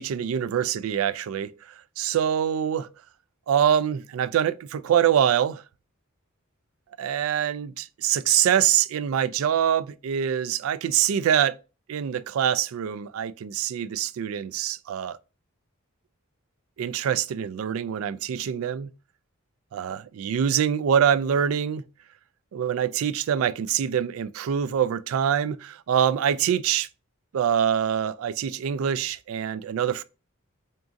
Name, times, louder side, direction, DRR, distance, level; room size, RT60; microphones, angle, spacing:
voice 1, 0.0-1.5 2.0-2.9 3.5-5.6 7.0-11.6 11.9-15.2 16.8-18.9 19.7-21.8 22.5-26.9 27.3-30.0, right 9 dB, 70° right, 0.3 m, -24 dB
3.9 x 3.6 x 2.5 m
head